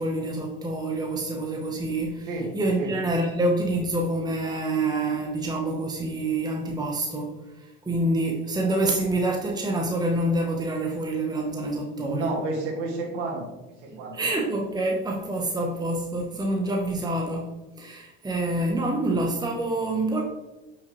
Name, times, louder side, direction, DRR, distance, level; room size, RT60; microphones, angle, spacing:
voice 1, 0.0-7.3 7.8-12.3 14.1-20.2, right 2 dB, 10° right, 1 dB, 1.1 m, -27 dB
voice 2, 12.0-13.5 13.8-14.2, right 3 dB, 75° right, -3 dB, 2.4 m, -30 dB
7.8 x 5.8 x 3.2 m, 1.1 s
hypercardioid pair, 90°, 34 cm